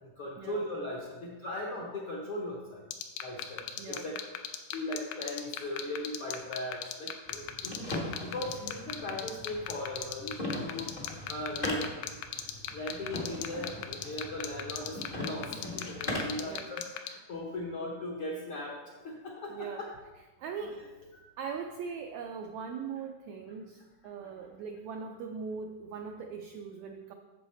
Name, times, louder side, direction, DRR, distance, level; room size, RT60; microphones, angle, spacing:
voice 1, 0.0-2.8 3.2-4.2 4.7-10.9 11.3-11.9 12.7-19.9 20.8-20.9 21.1-21.2 24.0-24.3, left 1 dB, 65° left, -2 dB, 1.3 m, -38 dB
sound 1, 2.9-17.1, left 11 dB, 90° left, 2.4 m, -37 dB
voice 2, 3.8-4.1 16.4-16.7 19.5-19.9 20.4-20.8 21.4-27.1, right 6 dB, 85° right, 4 dB, 1.6 m, -40 dB
sound 2, 7.2-16.5, left 1 dB, 50° left, 0.6 m, -40 dB
10.0 x 7.1 x 4.3 m, 1.2 s
omnidirectional pair, 3.9 m